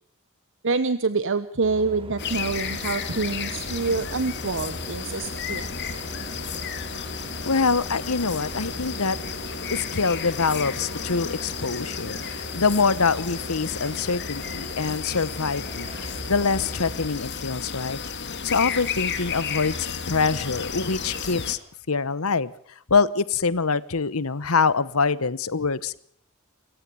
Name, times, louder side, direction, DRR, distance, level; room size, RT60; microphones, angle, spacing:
voice 1, 0.6-5.7, right 4 dB, 60° right, 13 dB, 1.0 m, -26 dB
sound 1, 1.6-17.1, right 1 dB, 25° right, 3.4 m, -40 dB
sound 2, 2.2-21.6, left 6 dB, 50° left, 2.5 m, -33 dB
voice 2, 7.4-9.2 9.7-18.0 18.4-19.8 20.1-21.6 21.9-22.5 22.9-26.0, left 4 dB, 75° left, 18 dB, 1.1 m, -24 dB
27.5 x 15.0 x 7.0 m, 0.62 s
head